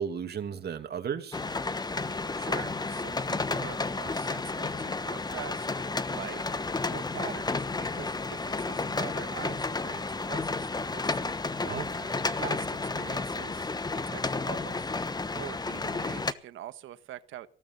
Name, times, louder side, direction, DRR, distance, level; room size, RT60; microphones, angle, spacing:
voice 1, 0.0-1.4 11.6-12.2, right 7 dB, 55° right, 2.5 m, -35 dB
sound 1, 1.3-16.3, left 3 dB, 20° left, 1.2 m, -32 dB
voice 2, 2.3-5.7 6.1-6.4 6.9-11.4 12.3-13.7 14.1-14.9 15.3-17.5, right 12 dB, 80° right, 1.4 m, -44 dB
17.0 x 12.5 x 5.6 m
cardioid pair, 90°, 20 cm